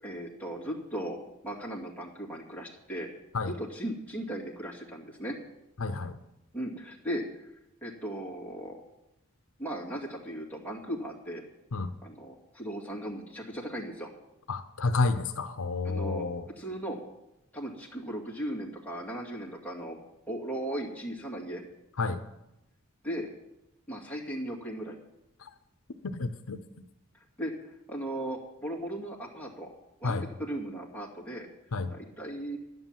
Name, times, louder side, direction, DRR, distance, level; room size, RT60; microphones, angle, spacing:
voice 1, 0.0-3.1 3.5-5.4 6.5-7.5 7.8-8.8 9.6-11.4 12.0-14.1 15.8-16.2 16.6-17.0 17.5-20.0 20.3-21.6 23.0-23.3 23.9-25.0 27.4-29.7 30.0-31.5 31.9-32.6, right 1 dB, 10° left, -3 dB, 2.4 m, -37 dB
voice 2, 5.8-6.2 11.7-11.9 14.5-16.5 22.0-22.2 26.0-26.6 30.0-30.3 31.7-31.9, left 3 dB, 70° left, 8 dB, 0.7 m, -30 dB
11.0 x 9.8 x 7.5 m, 0.90 s
head